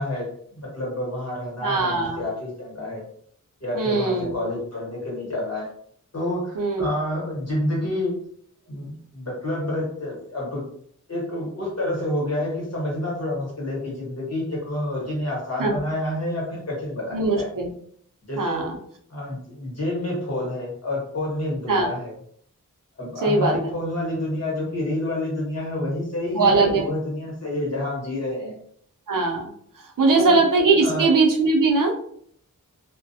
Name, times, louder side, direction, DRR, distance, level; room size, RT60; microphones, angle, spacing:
voice 1, 0.0-3.0 3.6-5.7 6.1-8.2 8.7-10.6 11.1-17.5 18.3-18.7 19.1-22.1 23.0-28.6 30.0-30.4 30.8-31.1, left 1 dB, 50° left, -4 dB, 1.3 m, -28 dB
voice 2, 1.6-2.2 3.7-4.3 6.6-6.9 15.6-15.8 17.1-17.7 18.4-18.8 21.7-21.9 23.2-23.7 26.3-26.9 29.1-29.5 29.8-31.9, right 3 dB, 80° right, 0 dB, 0.6 m, -20 dB
2.4 x 2.2 x 2.6 m, 0.63 s
wide cardioid pair, 75°, 32 cm